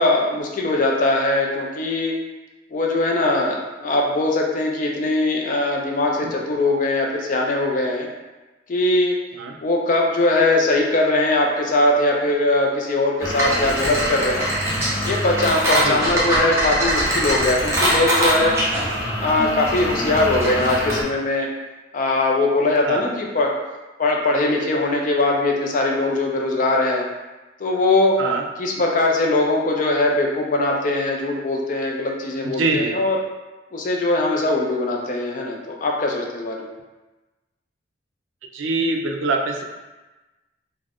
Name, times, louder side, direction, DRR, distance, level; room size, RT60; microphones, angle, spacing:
voice 1, 0.0-2.2 2.7-8.1 8.7-9.2 9.6-14.5 15.0-18.6 19.2-21.5 21.9-23.5 24.0-27.1 27.6-28.2 28.6-33.2 33.7-36.7, left 2 dB, 40° left, 0 dB, 0.4 m, -21 dB
sound 1, 13.2-21.0, equal, 15° right, 0.5 m, -22 dB
voice 2, 32.6-33.0 38.5-39.6, right 3 dB, 80° right, 2 dB, 0.4 m, -23 dB
2.4 x 2.1 x 3.3 m, 1.1 s
head